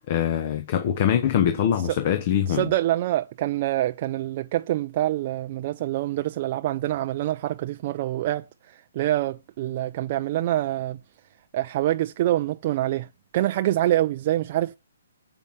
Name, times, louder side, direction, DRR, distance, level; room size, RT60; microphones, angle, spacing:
voice 1, 0.0-2.7, left 9 dB, 40° left, 0.9 m, -23 dB
voice 2, 2.5-11.0 11.5-14.7, right 14 dB, 40° right, 0.4 m, -26 dB
7.7 x 5.4 x 7.1 m
hypercardioid pair, 145°, 0 cm